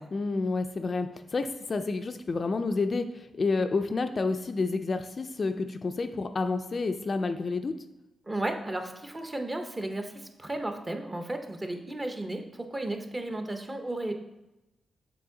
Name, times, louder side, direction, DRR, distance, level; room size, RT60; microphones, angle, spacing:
voice 1, 0.1-7.8, left 3 dB, 40° left, 7 dB, 0.3 m, -29 dB
voice 2, 8.3-14.1, right 1 dB, 20° right, 5 dB, 0.6 m, -34 dB
6.8 x 3.8 x 3.7 m, 0.97 s
wide cardioid pair, 120°, 0 cm